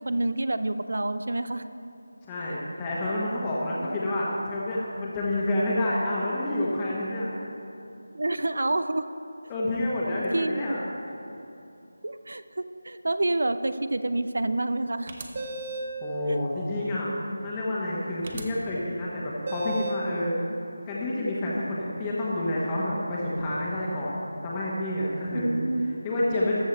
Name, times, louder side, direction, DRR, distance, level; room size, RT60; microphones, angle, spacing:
voice 1, 0.1-1.6 2.4-2.6 3.7-4.0 8.1-9.0 10.3-10.8 12.0-15.1 16.3-16.4 25.3-26.0, right 2 dB, 60° right, 12 dB, 0.5 m, -28 dB
voice 2, 2.3-7.3 9.5-11.1 16.0-17.1 17.4-20.3 20.9-24.1 24.4-25.5 26.0-26.6, left 1 dB, 15° left, -6 dB, 1.3 m, -28 dB
sound 1, 15.1-16.0 18.2-18.4 19.5-20.1, right 2 dB, 35° right, 0.8 m, -34 dB
13.5 x 7.2 x 4.4 m, 2.8 s
figure-of-eight pair, 160°, 0 cm